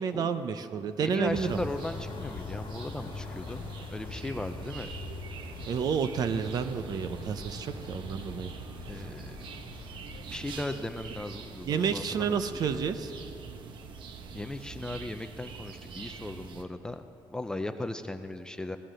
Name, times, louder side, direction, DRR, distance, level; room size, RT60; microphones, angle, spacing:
voice 1, 0.0-1.7 5.7-8.5 9.0-9.1 11.7-13.1, right 6 dB, 50° right, 10 dB, 0.6 m, -30 dB
voice 2, 1.0-4.9 8.9-9.4 10.2-12.8 14.3-17.0 17.3-18.8, left 2 dB, 10° left, 8 dB, 0.4 m, -37 dB
sound 1, 1.2-10.2, left 5 dB, 85° left, 1.3 m, -43 dB
sound 2, 1.3-16.6, right 5 dB, 70° right, 1.0 m, -44 dB
17.0 x 11.5 x 6.4 m, 2.9 s
cardioid pair, 175°, 8 cm